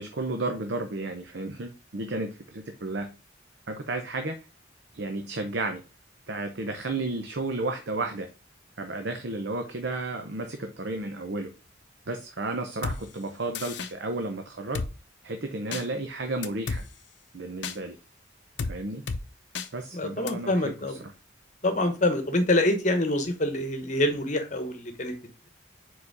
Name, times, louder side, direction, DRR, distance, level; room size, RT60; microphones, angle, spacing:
voice 1, 0.0-3.1 3.7-4.4 4.9-5.8 6.3-8.3 8.8-11.5 12.1-14.8 15.2-16.9 17.3-18.0 18.7-19.0 19.7-21.1, right 2 dB, 65° right, 6 dB, 0.7 m, -32 dB
Drum kit, 12.8-13.0 13.5-13.9 14.7-14.9 15.7-15.8 16.4-16.8 17.6-17.8 18.6-18.7 19.1-19.2 19.5-19.7 20.3-20.4, left 4 dB, 65° left, 0.6 m, -31 dB
voice 2, 19.9-21.0 21.6-25.2, left 1 dB, 40° left, 7 dB, 1.0 m, -26 dB
4.9 x 4.1 x 4.7 m, 0.32 s
head